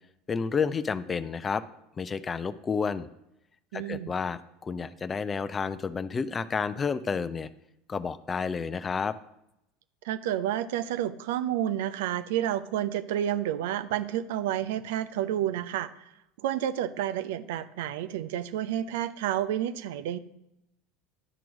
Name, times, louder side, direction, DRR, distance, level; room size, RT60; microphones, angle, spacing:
voice 1, 0.3-1.6 2.0-3.1 3.7-7.5 7.9-9.2, left 5 dB, 25° left, 15 dB, 0.5 m, -30 dB
voice 2, 3.7-4.1 10.0-16.1 16.4-20.2, right 11 dB, 70° right, 13 dB, 0.5 m, -30 dB
11.0 x 4.5 x 6.2 m, 0.84 s
hypercardioid pair, 80°, 0 cm